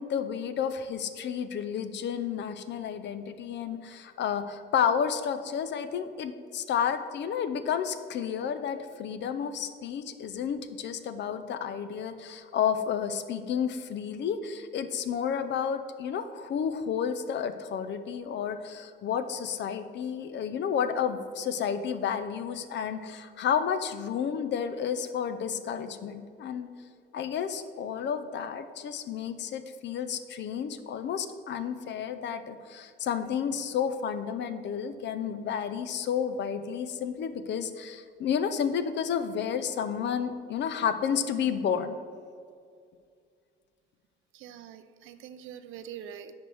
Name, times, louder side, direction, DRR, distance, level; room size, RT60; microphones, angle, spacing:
voice 1, 0.0-26.7 27.1-42.0, left 7 dB, 65° left, 10 dB, 0.5 m, -31 dB
voice 2, 44.3-46.3, right 9 dB, 85° right, 11 dB, 0.5 m, -44 dB
5.1 x 4.5 x 6.1 m, 2.2 s
cardioid pair, 90°, 20 cm